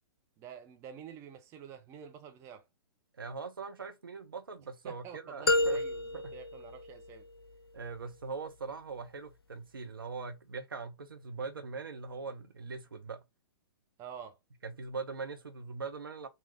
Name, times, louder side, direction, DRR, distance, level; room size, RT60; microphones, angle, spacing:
voice 1, 0.4-2.6 4.8-7.2 14.0-14.4, right 8 dB, 20° right, 0.6 m, -48 dB
voice 2, 3.2-5.8 6.1-6.3 7.7-13.2 14.6-16.3, right 4 dB, 65° right, 0.9 m, -41 dB
sound 1, 5.5-7.5, left 2 dB, 75° left, 0.5 m, -31 dB
3.9 x 2.9 x 4.2 m
figure-of-eight pair, 115°, 12 cm